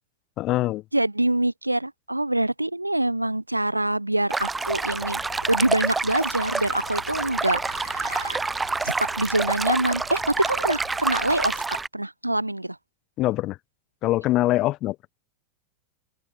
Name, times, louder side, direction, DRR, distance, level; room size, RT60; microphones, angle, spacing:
voice 1, 0.4-0.8 13.2-13.6 14.0-15.0, left 16 dB, 35° left, 1.0 m, -23 dB
voice 2, 0.9-5.2 5.5-8.4 8.8-11.6 11.9-12.8, right 1 dB, 85° right, 1.1 m, -25 dB
sound 1, 4.3-11.9, right 3 dB, 10° right, 0.8 m, -28 dB
sound 2, 4.6-11.6, left 11 dB, 60° left, 5.4 m, -47 dB
open air
figure-of-eight pair, 90°, 0 cm